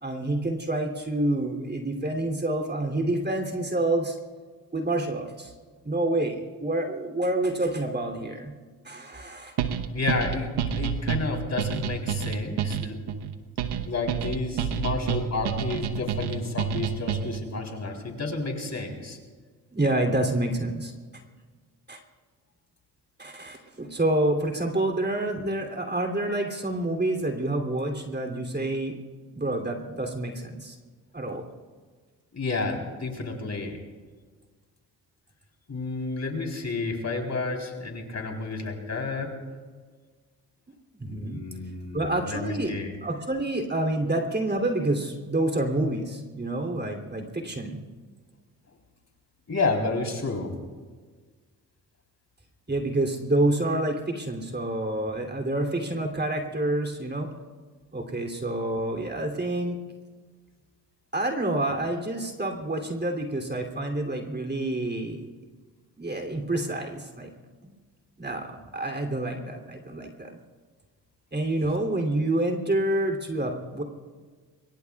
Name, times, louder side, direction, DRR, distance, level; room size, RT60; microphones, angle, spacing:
voice 1, 0.0-4.2 4.7-5.5 5.8-8.5 8.8-9.5 19.7-20.9 21.9-22.0 23.2-29.0 29.3-30.8 31.1-31.4 41.0-41.4 41.9-42.7 43.0-47.8 52.7-57.3 57.9-59.8 61.1-65.3 66.0-67.3 67.6-67.7 68.2-70.4 71.3-73.8, right 1 dB, 25° right, 2 dB, 2.9 m, -28 dB
sound 1, 9.6-17.5, right 8 dB, 80° right, 1.0 m, -29 dB
voice 2, 9.9-13.0 13.8-19.2 32.3-33.8 35.7-39.3 41.0-42.9 49.5-50.5, left 3 dB, 40° left, 2 dB, 3.7 m, -31 dB
24.5 x 22.5 x 2.4 m, 1.5 s
supercardioid pair, 55°, 39 cm